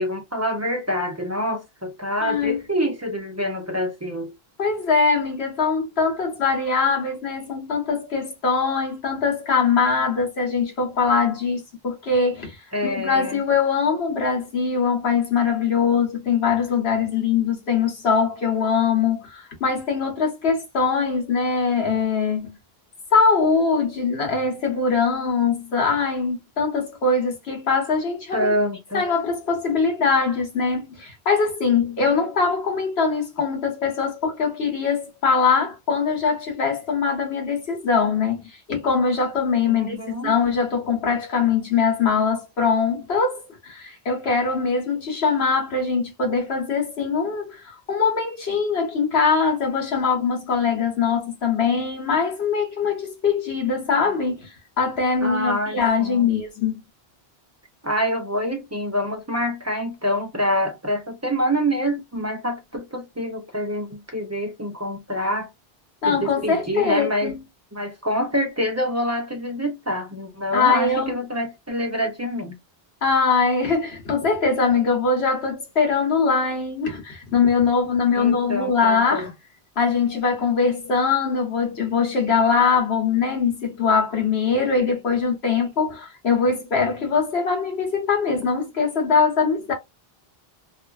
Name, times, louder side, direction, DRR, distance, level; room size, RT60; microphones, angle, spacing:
voice 1, 0.0-4.3 12.7-13.4 28.3-29.1 39.7-40.4 55.2-56.3 57.8-65.5 66.1-67.3 67.7-72.6 78.1-79.3, equal, 20° right, 0.4 m, -26 dB
voice 2, 2.2-2.6 4.6-12.6 12.8-22.6 23.1-28.5 28.9-56.8 66.0-67.4 70.5-71.2 73.0-79.3 79.8-89.7, left 5 dB, 85° left, 1.4 m, -22 dB
2.8 x 2.4 x 2.3 m
omnidirectional pair, 1.0 m